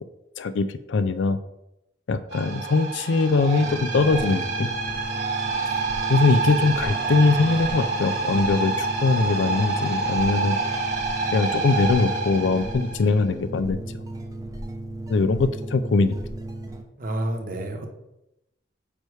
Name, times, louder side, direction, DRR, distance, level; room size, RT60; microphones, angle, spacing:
voice 1, 0.4-1.4 2.1-4.7 6.1-10.6 11.3-14.0 15.1-16.1, left 3 dB, 90° left, 12 dB, 0.4 m, -22 dB
sound 1, 2.3-13.1, right 3 dB, 65° right, 2.3 m, -27 dB
sound 2, 3.6-16.8, right 1 dB, 20° right, 0.8 m, -36 dB
voice 2, 17.0-17.9, right 1 dB, 50° right, 4 dB, 1.0 m, -29 dB
8.6 x 3.3 x 4.8 m, 0.86 s
head